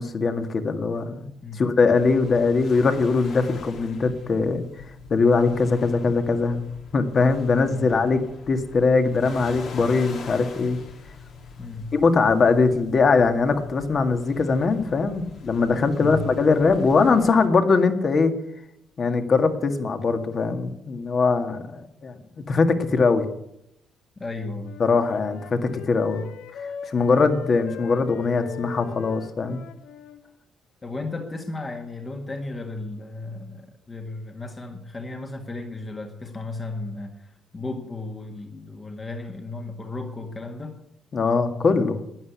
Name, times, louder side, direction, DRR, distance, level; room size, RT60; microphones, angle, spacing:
voice 1, 0.0-4.6 5.1-6.6 6.9-10.8 11.9-18.3 19.0-22.2 22.5-23.2 24.8-26.2 26.9-29.6 41.1-42.0, left 4 dB, 45° left, 7 dB, 1.9 m, -21 dB
sound 1, 1.9-17.5, left 4 dB, 70° left, 3.0 m, -43 dB
voice 2, 11.6-11.9 16.0-16.2 24.2-24.7 26.1-26.2 30.8-40.8, left 2 dB, 25° left, 3 dB, 1.7 m, -34 dB
Wind instrument woodwind instrument, 24.6-30.2, left 7 dB, 90° left, 1.2 m, -40 dB
12.0 x 10.0 x 8.3 m, 0.78 s
cardioid pair, 90°, 0 cm